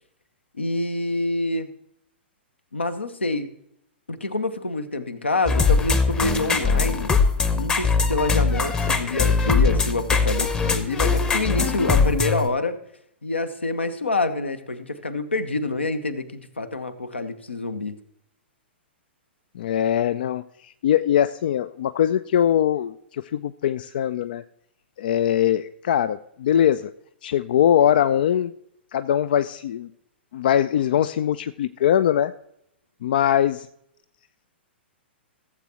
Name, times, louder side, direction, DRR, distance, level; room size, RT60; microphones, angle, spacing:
voice 1, 0.5-1.7 2.7-3.5 4.1-7.2 7.5-12.8 13.2-18.0, left 2 dB, 75° left, 10 dB, 0.9 m, -27 dB
sound 1, 5.5-12.5, left 4 dB, 15° left, 0.8 m, -21 dB
voice 2, 19.6-24.4 25.0-26.9 27.2-28.5 28.9-29.9 30.3-32.3 33.0-33.7, left 10 dB, 50° left, 13 dB, 0.3 m, -22 dB
15.5 x 7.5 x 2.9 m, 0.74 s
figure-of-eight pair, 110°, 6 cm